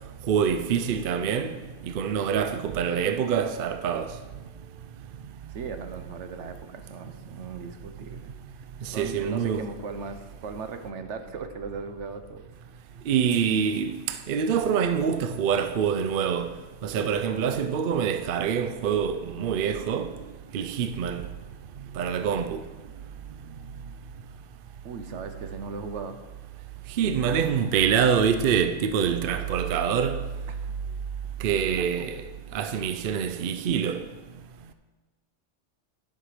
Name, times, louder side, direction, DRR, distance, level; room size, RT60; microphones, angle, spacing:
voice 1, 0.3-1.6 1.8-4.1 8.8-9.7 13.1-16.5 16.8-20.2 20.5-21.3 22.0-22.6 27.0-30.2 31.4-32.2 32.5-34.0, right 7 dB, 60° right, 0.6 m, -25 dB
voice 2, 5.5-8.3 8.9-12.5 24.8-26.2 30.5-30.8 31.8-31.9, right 5 dB, 75° right, 1.1 m, -38 dB
12.0 x 5.8 x 4.8 m
omnidirectional pair, 1.2 m